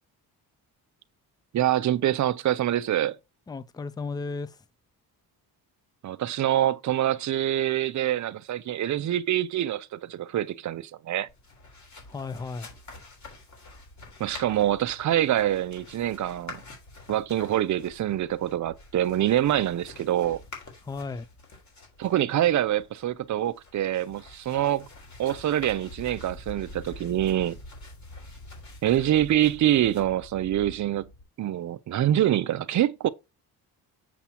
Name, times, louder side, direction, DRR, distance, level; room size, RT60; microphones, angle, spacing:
voice 1, 1.5-3.2 6.0-11.3 14.2-16.6 17.1-20.4 22.0-24.9 25.2-27.6 28.8-31.1 31.4-33.1, right 12 dB, 45° right, 0.6 m, -25 dB
voice 2, 3.5-4.6 12.0-12.7 20.8-21.3, left 4 dB, 10° left, 0.4 m, -34 dB
sound 1, 11.3-31.2, left 2 dB, 45° left, 3.7 m, -46 dB
7.1 x 7.1 x 2.9 m
cardioid pair, 140°, 39 cm